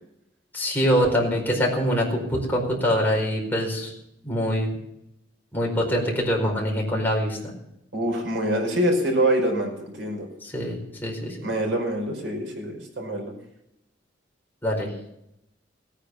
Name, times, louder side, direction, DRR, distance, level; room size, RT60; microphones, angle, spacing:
voice 1, 0.5-3.9 4.2-4.7 5.5-7.4 10.4-11.4 14.6-14.9, equal, 10° left, -1 dB, 4.7 m, -24 dB
voice 2, 7.9-10.3 11.4-13.3, right 1 dB, 75° right, 2 dB, 5.2 m, -25 dB
17.0 x 9.9 x 7.2 m, 0.80 s
head